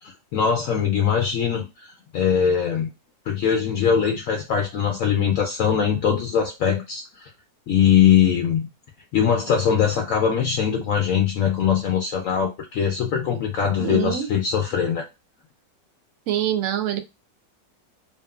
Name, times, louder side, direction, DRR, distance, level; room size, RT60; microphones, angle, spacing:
voice 1, 0.0-2.9 3.3-7.3 7.7-8.7 9.1-15.0, left 8 dB, 80° left, 0.7 m, -21 dB
voice 2, 13.8-14.3 16.3-17.0, right 11 dB, 85° right, 0.7 m, -24 dB
2.8 x 2.5 x 2.2 m
omnidirectional pair, 1.9 m